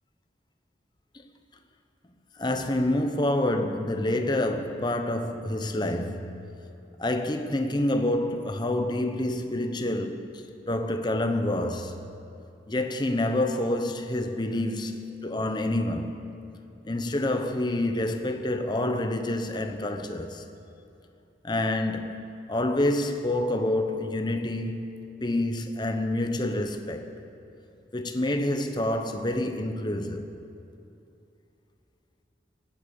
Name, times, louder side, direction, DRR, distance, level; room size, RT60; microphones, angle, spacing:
voice 1, 2.4-6.6 7.0-12.0 12.7-16.4 16.8-20.4 21.4-27.1 27.9-30.3, left 1 dB, 25° left, 0.9 m, -28 dB
18.0 x 9.0 x 8.3 m
head